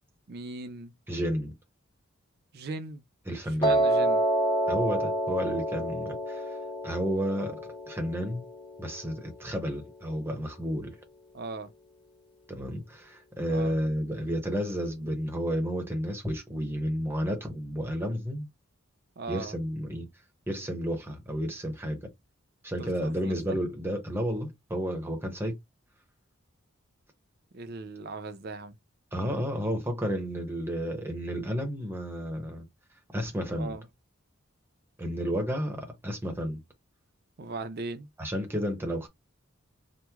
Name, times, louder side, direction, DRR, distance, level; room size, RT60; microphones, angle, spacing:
voice 1, 0.3-0.9 2.5-3.0 3.4-4.2 11.3-11.7 13.5-13.8 19.2-19.6 22.8-23.6 27.5-28.8 33.6-33.9 37.4-38.1, right 3 dB, 50° right, 0.5 m, -38 dB
voice 2, 1.1-1.5 3.3-3.8 4.7-6.5 6.8-7.6 7.9-8.4 8.8-10.9 12.5-18.5 19.3-20.1 20.5-22.0 22.6-25.6 29.1-32.6 33.1-33.7 35.0-36.6 38.2-39.1, equal, 10° right, 0.8 m, -31 dB
Piano, 3.6-9.8, right 1 dB, 20° left, 0.8 m, -29 dB
3.0 x 2.1 x 3.4 m
head